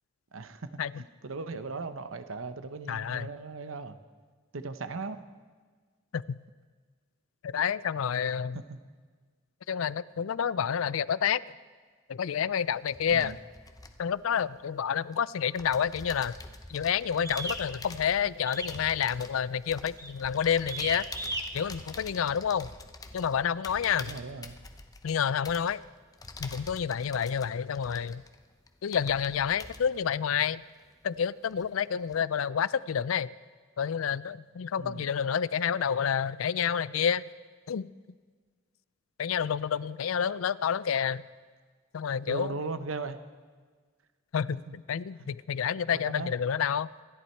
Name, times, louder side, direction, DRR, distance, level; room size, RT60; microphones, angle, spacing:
voice 1, 0.3-4.0 4.5-5.2 8.5-8.8 13.1-13.4 24.0-24.6 34.8-35.1 42.3-43.2 44.7-44.8 45.2-45.3 45.9-46.3, right 3 dB, 80° right, 11 dB, 0.9 m, -38 dB
voice 2, 2.9-3.3 6.1-6.4 7.4-8.6 9.7-11.4 12.1-13.4 14.0-16.4 16.7-21.1 21.5-22.7 23.1-24.1 25.0-25.8 26.4-28.2 28.8-30.6 31.0-33.3 33.8-37.2 37.7-37.9 39.2-41.2 41.9-42.5 44.3-46.9, left 7 dB, 90° left, 19 dB, 0.4 m, -29 dB
sound 1, 12.5-15.1 15.5-31.2 31.5-32.2, left 3 dB, 20° left, 0.8 m, -47 dB
sound 2, 17.2-17.6 18.5-18.8 19.1-19.4 20.0-20.2 20.7-21.4, right 2 dB, 15° right, 1.2 m, -35 dB
26.5 x 11.5 x 4.5 m, 1.5 s
head